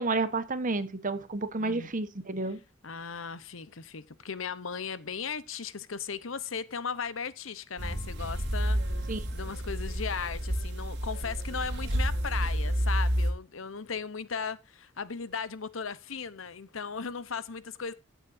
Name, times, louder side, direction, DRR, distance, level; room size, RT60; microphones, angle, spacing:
voice 1, 0.0-2.6 9.1-9.2, right 3 dB, 40° right, 1.2 m, -30 dB
voice 2, 2.8-17.9, left 6 dB, 75° left, 0.9 m, -37 dB
sound 1, 7.8-13.3, equal, 60° right, 3.0 m, -30 dB
16.0 x 8.3 x 2.7 m
head